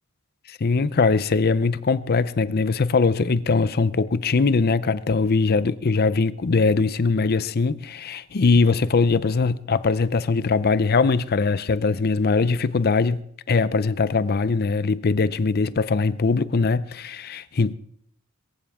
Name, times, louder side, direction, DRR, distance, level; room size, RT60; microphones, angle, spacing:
voice 1, 0.5-13.2 13.5-17.7, left 4 dB, 45° left, 0.5 m, -21 dB
22.0 x 14.5 x 3.6 m
head